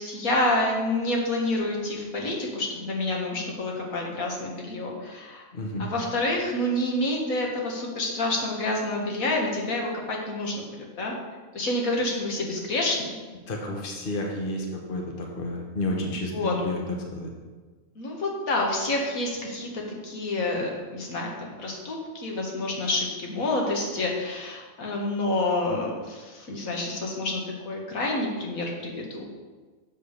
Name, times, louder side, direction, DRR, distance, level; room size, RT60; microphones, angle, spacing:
voice 1, 0.0-5.4 5.8-11.1 11.5-13.1 16.3-16.6 18.0-29.2, left 2 dB, 80° left, -1 dB, 1.9 m, -28 dB
voice 2, 5.5-5.9 13.5-17.3, left 2 dB, 40° left, 0 dB, 1.3 m, -31 dB
7.7 x 5.2 x 6.5 m, 1.4 s
omnidirectional pair, 1.4 m